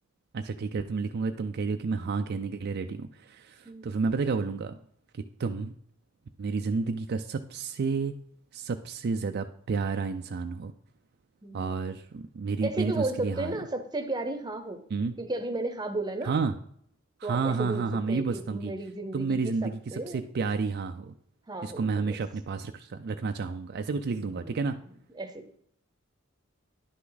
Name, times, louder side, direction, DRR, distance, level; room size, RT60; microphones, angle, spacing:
voice 1, 0.3-4.8 5.1-5.7 6.4-8.1 8.5-10.7 11.5-13.5 14.9-15.1 16.2-16.6 17.2-18.7 19.1-21.1 21.6-24.8, right 4 dB, 55° right, 7 dB, 0.4 m, -30 dB
voice 2, 12.6-14.8 15.2-16.3 17.2-20.2 21.5-22.2 24.3-24.7 25.2-25.6, right 2 dB, 20° right, 8 dB, 0.8 m, -34 dB
10.0 x 5.9 x 4.0 m, 0.65 s
head